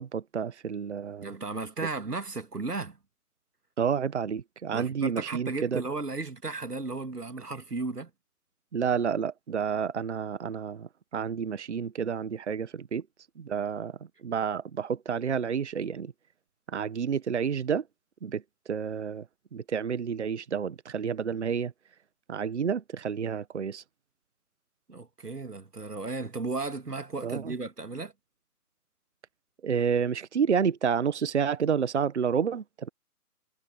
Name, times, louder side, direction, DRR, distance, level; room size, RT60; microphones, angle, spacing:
voice 1, 0.0-1.3 3.8-5.8 8.7-13.0 13.4-16.1 16.7-17.8 18.2-18.4 18.7-19.2 19.5-21.7 22.3-23.8 27.2-27.5 29.6-32.9, right 7 dB, 45° right, 1.2 m, -30 dB
voice 2, 1.2-3.0 4.7-8.1 24.9-28.1, right 3 dB, 85° right, 2.1 m, -35 dB
figure-of-eight pair, 150°, 46 cm